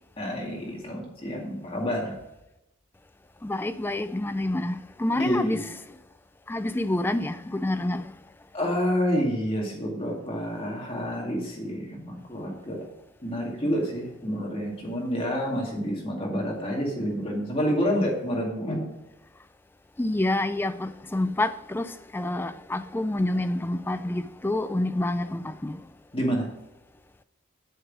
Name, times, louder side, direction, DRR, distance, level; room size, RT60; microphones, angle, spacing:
voice 1, 0.2-2.2 5.2-5.6 8.5-12.8 13.2-18.9 26.1-26.5, equal, 25° left, 2.1 m, -28 dB
voice 2, 3.4-5.7 6.5-8.1 20.0-25.8, left 1 dB, 10° left, 0.3 m, -28 dB
8.0 x 6.1 x 6.1 m
head